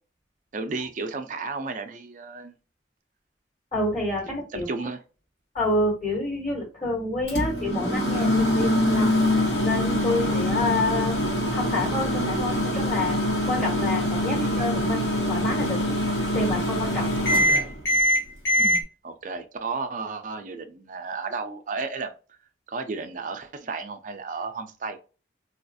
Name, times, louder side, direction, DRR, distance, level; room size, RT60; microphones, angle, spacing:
voice 1, 0.5-2.6 4.5-5.0 17.3-17.7 19.0-22.4 22.7-25.0, right 4 dB, 45° right, 0.4 m, -33 dB
voice 2, 3.7-4.7 5.5-9.2 9.6-11.2 11.5-13.2 13.5-15.0 15.3-15.8 16.3-17.1 18.6-18.8, left 2 dB, 35° left, 1.3 m, -28 dB
Microwave oven, 7.3-18.8, left 1 dB, 90° left, 1.2 m, -24 dB
4.1 x 2.3 x 2.6 m
head